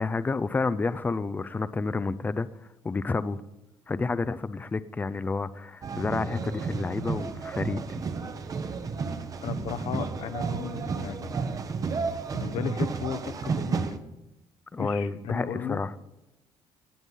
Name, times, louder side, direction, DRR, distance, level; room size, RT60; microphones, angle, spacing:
voice 1, 0.0-2.5 2.8-3.4 3.9-8.0 14.7-15.9, left 3 dB, 15° left, 0.5 m, -30 dB
sound 1, 5.8-14.0, right 5 dB, 35° right, 1.0 m, -32 dB
voice 2, 9.4-11.4 12.3-14.0 14.8-15.8, left 9 dB, 70° left, 0.9 m, -35 dB
18.0 x 8.0 x 5.5 m
cardioid pair, 110°, 10 cm